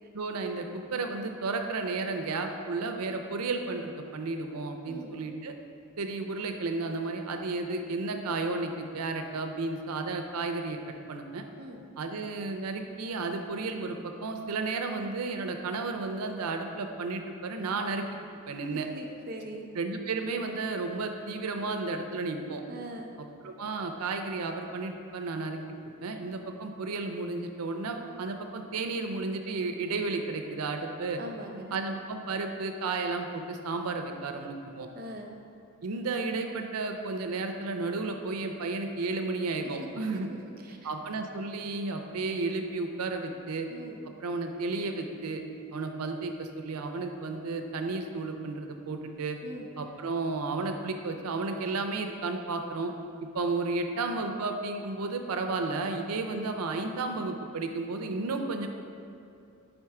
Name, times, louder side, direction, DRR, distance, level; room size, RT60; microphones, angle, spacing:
voice 1, 0.1-5.5 6.0-10.8 11.1-11.4 12.0-18.0 18.5-18.9 19.8-22.6 23.4-25.6 26.0-31.2 31.7-34.9 35.8-40.3 40.8-43.7 44.2-45.4 45.7-49.4 49.8-52.9 53.3-58.7, right 3 dB, 85° right, 5 dB, 0.5 m, -33 dB
voice 2, 18.9-19.7 22.7-23.1 31.2-31.8 34.9-35.3 39.7-39.9 40.3-40.9 43.7-44.0 49.4-49.7, right 1 dB, 40° right, 2 dB, 0.5 m, -42 dB
5.1 x 4.4 x 4.7 m, 2.6 s
head